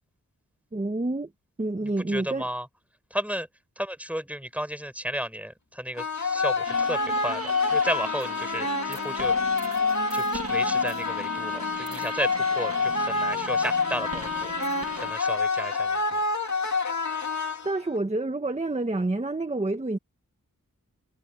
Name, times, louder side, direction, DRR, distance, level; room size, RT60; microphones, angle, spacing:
voice 1, 0.7-1.3 1.6-2.4 17.6-20.0, right 2 dB, 20° right, 1.2 m, -28 dB
voice 2, 2.1-2.7 3.1-3.5 3.8-9.3 10.1-12.3 12.6-14.5 15.0-16.2, equal, 5° right, 4.3 m, -33 dB
sound 1, 6.0-18.0, left 4 dB, 55° left, 2.5 m, -27 dB
sound 2, 6.7-15.1, right 4 dB, 45° right, 1.4 m, -39 dB
wide cardioid pair, 85°, 33 cm